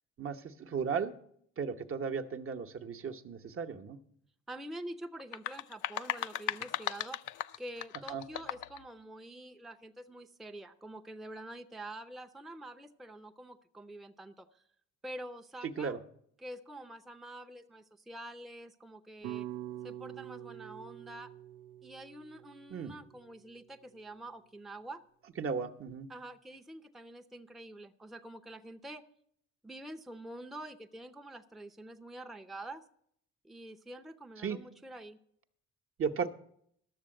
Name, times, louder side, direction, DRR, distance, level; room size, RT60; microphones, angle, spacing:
voice 1, 0.2-1.1 1.6-4.0 8.1-8.2 15.6-16.0 22.7-22.9 25.4-26.1 34.4-34.6 36.0-36.3, right 6 dB, 45° right, 7 dB, 0.9 m, -35 dB
voice 2, 4.5-7.2 7.6-14.6 15.0-16.0 16.4-19.5 19.8-21.3 21.8-25.0 26.1-29.0 29.6-32.8 33.4-35.2, right 1 dB, ahead, 6 dB, 0.6 m, -46 dB
sound 1, 5.2-8.8, left 13 dB, 80° left, 0.5 m, -37 dB
sound 2, 19.2-23.5, right 12 dB, 80° right, 0.5 m, -45 dB
12.0 x 7.0 x 7.6 m, 0.69 s
cardioid pair, 90°, 30 cm